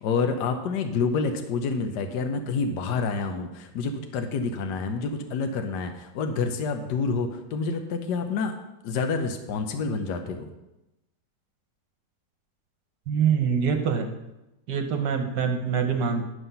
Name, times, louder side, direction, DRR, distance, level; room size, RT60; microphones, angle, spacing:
voice 1, 0.0-8.5 8.8-10.5, left 4 dB, 70° left, 5 dB, 1.4 m, -28 dB
voice 2, 13.1-14.1 14.7-16.2, right 6 dB, 70° right, 5 dB, 1.5 m, -24 dB
11.0 x 5.6 x 5.6 m, 0.95 s
omnidirectional pair, 2.0 m